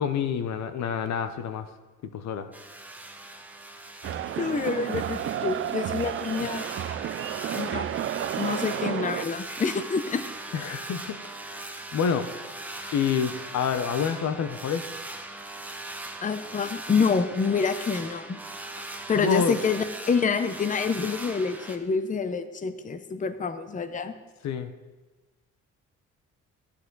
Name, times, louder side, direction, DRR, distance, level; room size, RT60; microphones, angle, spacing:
voice 1, 0.0-1.7 2.1-2.5 10.5-11.2 11.5-12.3 12.9-14.9 19.2-19.6 24.4-24.7, left 7 dB, 65° left, 10 dB, 0.8 m, -28 dB
sound 1, 2.5-21.8, right 2 dB, 5° right, 1.1 m, -40 dB
sound 2, 4.0-9.3, right 11 dB, 45° right, 0.4 m, -31 dB
voice 2, 4.4-6.7 7.5-7.9 8.4-10.3 16.2-18.4 19.1-24.1, left 5 dB, 25° left, 11 dB, 0.7 m, -27 dB
15.0 x 8.5 x 3.9 m, 1.3 s
cardioid pair, 90°, 30 cm